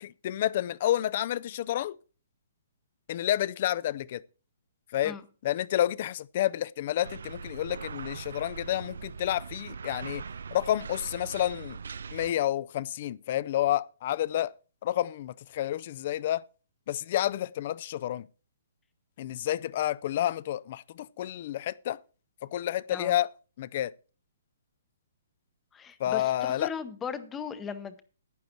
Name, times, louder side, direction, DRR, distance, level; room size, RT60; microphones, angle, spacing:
voice 1, 0.0-2.0 3.1-4.2 4.9-5.2 5.4-10.2 10.5-11.8 12.1-14.5 14.8-16.4 16.9-18.3 19.2-22.0 22.5-23.3 23.6-23.9 26.0-26.7, left 12 dB, 35° left, 0.4 m, -29 dB
sound 1, 7.0-12.3, right 5 dB, 80° right, 0.4 m, -41 dB
voice 2, 25.7-28.0, left 6 dB, 10° left, 0.8 m, -38 dB
11.5 x 9.3 x 4.4 m
hypercardioid pair, 170°, 0 cm